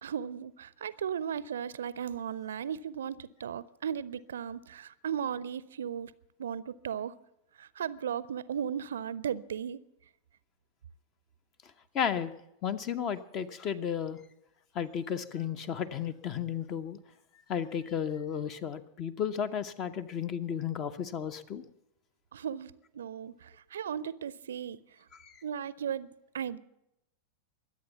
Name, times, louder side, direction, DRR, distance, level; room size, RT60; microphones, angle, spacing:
voice 1, 0.0-6.1 6.4-7.1 7.6-9.8 22.3-24.8 25.4-26.1 26.3-26.6, right 8 dB, 65° right, 0.5 m, -36 dB
voice 2, 11.9-12.3 12.6-14.2 14.7-17.0 17.5-21.6 25.2-25.4, left 8 dB, 35° left, 0.9 m, -33 dB
22.0 x 8.5 x 7.1 m
figure-of-eight pair, 90°, 0 cm